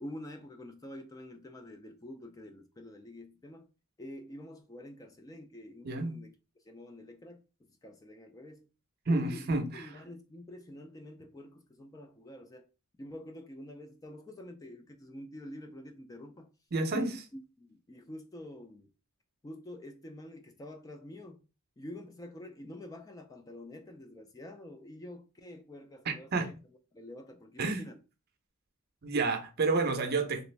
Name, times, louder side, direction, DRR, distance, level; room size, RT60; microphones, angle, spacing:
voice 1, 0.0-3.7 4.0-6.3 6.6-7.4 7.8-8.7 9.1-12.6 13.0-16.5 16.9-18.9 19.4-21.4 21.8-26.5 26.9-28.0, left 1 dB, 15° left, 0.3 m, -47 dB
voice 2, 9.1-9.8 16.7-17.2 26.1-26.5 27.6-27.8 29.0-30.4, right 3 dB, 50° right, 0.6 m, -30 dB
3.0 x 2.4 x 3.2 m
head